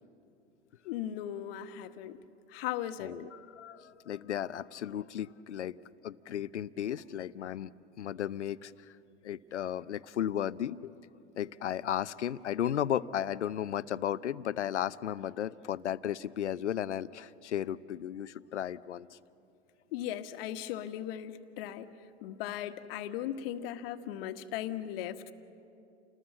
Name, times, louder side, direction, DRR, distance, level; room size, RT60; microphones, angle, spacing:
voice 1, 0.8-2.2 2.5-3.2 19.9-21.9 22.2-25.3, left 11 dB, 55° left, 8 dB, 1.4 m, -37 dB
voice 2, 3.0-5.8 6.0-7.7 8.0-8.7 9.2-10.9 11.4-19.2, left 10 dB, 90° left, 16 dB, 0.7 m, -34 dB
29.5 x 20.0 x 7.6 m, 2.6 s
hypercardioid pair, 105°, 34 cm